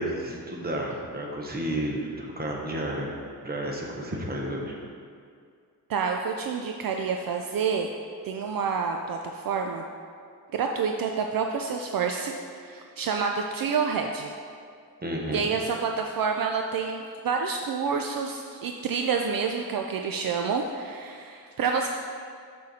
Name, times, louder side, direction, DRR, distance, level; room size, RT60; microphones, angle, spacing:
voice 1, 0.0-3.1 3.4-4.8 15.0-15.5, right 1 dB, 25° right, -1 dB, 1.0 m, -31 dB
voice 2, 5.9-7.9 8.2-9.8 10.5-14.3 15.3-21.9, right 5 dB, 65° right, 3 dB, 0.5 m, -28 dB
6.5 x 6.5 x 4.1 m, 2.2 s
wide cardioid pair, 140°, 38 cm